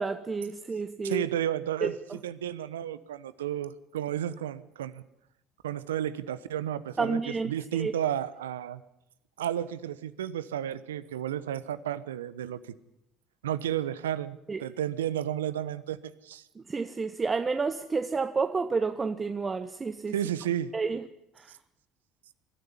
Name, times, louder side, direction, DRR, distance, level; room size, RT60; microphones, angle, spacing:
voice 1, 0.0-1.3 1.8-1.9 7.0-7.5 7.8-7.9 14.5-14.6 16.7-20.1 20.7-21.0, right 4 dB, 25° right, 1.1 m, -29 dB
voice 2, 1.0-5.0 5.6-8.8 9.4-12.6 13.4-16.0 16.2-16.4 20.1-20.7, right 10 dB, 85° right, 1.0 m, -32 dB
23.5 x 13.5 x 9.9 m
hypercardioid pair, 65°, 0 cm